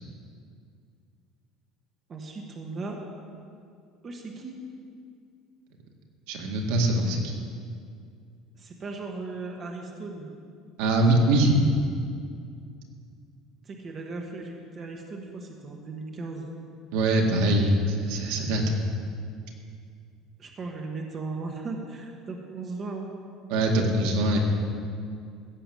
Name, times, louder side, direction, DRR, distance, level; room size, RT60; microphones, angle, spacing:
voice 1, 2.1-3.0 4.0-4.6 8.6-10.3 13.6-16.5 20.4-23.1, right 3 dB, 25° right, 1 dB, 1.3 m, -37 dB
voice 2, 6.3-7.4 10.8-11.6 16.9-18.8 23.5-24.4, right 1 dB, 80° right, 1 dB, 2.0 m, -23 dB
16.0 x 6.8 x 7.7 m, 2.3 s
cardioid pair, 175°, 0 cm